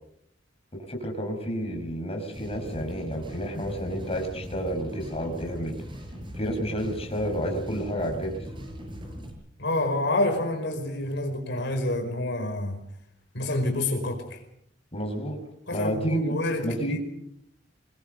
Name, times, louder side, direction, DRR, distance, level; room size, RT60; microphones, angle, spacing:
voice 1, 0.7-5.8 6.3-8.4 14.9-15.4 15.7-17.0, equal, 35° left, 3 dB, 5.4 m, -30 dB
sound 1, 2.3-9.3, equal, 25° right, 7.2 m, -40 dB
voice 2, 9.6-12.8 13.3-14.4 15.7-17.0, left 1 dB, 65° left, 4 dB, 5.0 m, -28 dB
25.0 x 21.0 x 6.8 m, 0.75 s
head